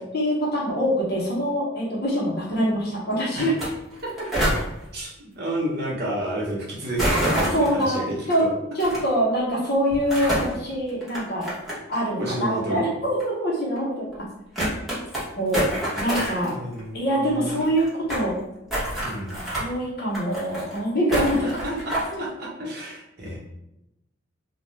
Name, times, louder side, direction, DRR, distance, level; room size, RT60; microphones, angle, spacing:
voice 1, 0.0-3.5 7.5-8.4 8.7-11.5 11.9-14.1 15.4-15.7 15.9-16.6 16.9-18.4 19.5-21.8 22.1-22.2, equal, 55° left, -4 dB, 0.9 m, -24 dB
sound 1, 3.5-3.7 3.9-4.6 7.0-7.8 8.8-9.0 9.9-10.5 11.0-12.0 12.3-12.4 13.2-13.3 13.8-13.9 14.1-14.2 14.5-15.2 15.5-16.5 16.8-16.9 17.1-17.2 17.3-18.3 18.7-19.6 20.1-20.8 21.1-22.1, right 1 dB, ahead, 0.9 m, -26 dB
voice 2, 4.9-8.5 12.2-12.8 16.4-17.6 19.0-19.4 21.4-23.4, right 1 dB, 60° right, -4 dB, 0.9 m, -31 dB
2.4 x 2.2 x 3.1 m, 0.88 s
head